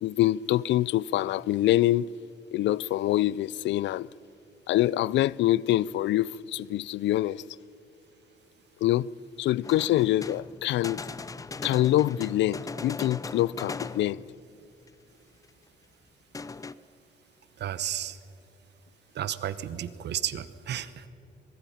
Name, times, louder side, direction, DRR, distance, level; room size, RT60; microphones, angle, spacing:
voice 1, 0.0-2.1 2.5-4.1 4.7-7.4 8.8-9.1 9.4-11.0 11.6-14.2, left 14 dB, 75° left, 0.4 m, -25 dB
sound 1, 9.6-14.5 14.9-15.0 15.5-15.6 16.3-16.7, left 4 dB, 20° left, 0.5 m, -38 dB
voice 2, 17.6-18.2 19.1-21.1, right 10 dB, 65° right, 1.0 m, -33 dB
24.0 x 22.5 x 5.7 m
cardioid pair, 130°, 19 cm